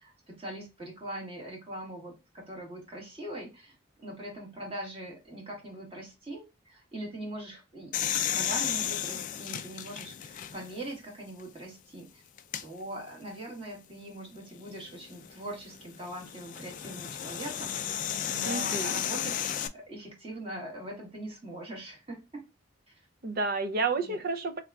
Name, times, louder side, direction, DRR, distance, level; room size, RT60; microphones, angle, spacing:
voice 1, 0.0-12.2 12.6-19.4 19.7-22.4 22.9-23.0 24.0-24.2, right 1 dB, 30° right, 1.7 m, -42 dB
sound 1, 7.9-10.8 11.4-11.5 12.4-12.6 14.8-19.7, left 10 dB, 40° left, 0.3 m, -33 dB
voice 2, 18.4-19.0 23.2-24.6, right 3 dB, 50° right, 0.6 m, -30 dB
3.6 x 3.3 x 2.3 m
head